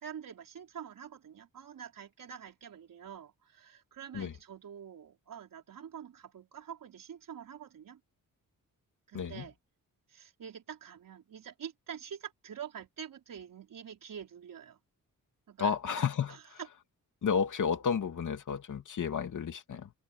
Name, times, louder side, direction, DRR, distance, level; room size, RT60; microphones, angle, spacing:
voice 1, 0.0-8.0 9.1-9.6 10.1-14.8 15.5-15.7 16.3-16.7, right 8 dB, 70° right, 4.5 m, -46 dB
voice 2, 15.6-16.6 17.2-19.9, left 6 dB, 60° left, 2.8 m, -32 dB
wide cardioid pair, 140°, 34 cm